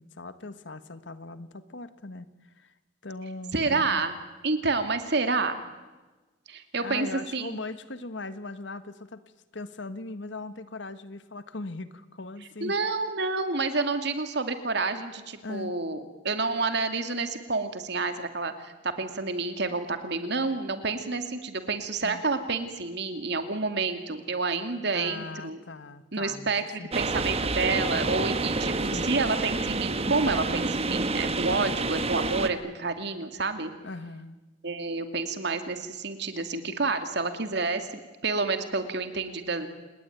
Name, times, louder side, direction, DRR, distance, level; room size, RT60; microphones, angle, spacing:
voice 1, 0.0-2.3 2.6-2.7 3.0-4.0 6.8-9.2 9.5-12.7 15.4-15.8 22.0-22.2 24.9-26.5 26.8-27.2 28.9-29.1 31.4-31.8 33.8-34.4, left 3 dB, 70° left, 12 dB, 1.5 m, -39 dB
voice 2, 3.5-4.2 4.4-5.6 6.5-7.6 12.6-25.6 26.1-33.7 34.6-39.7, right 3 dB, 60° right, 8 dB, 2.5 m, -29 dB
sound 1, 26.9-32.5, right 3 dB, 35° right, 1.4 m, -28 dB
29.0 x 19.5 x 9.4 m, 1.2 s
head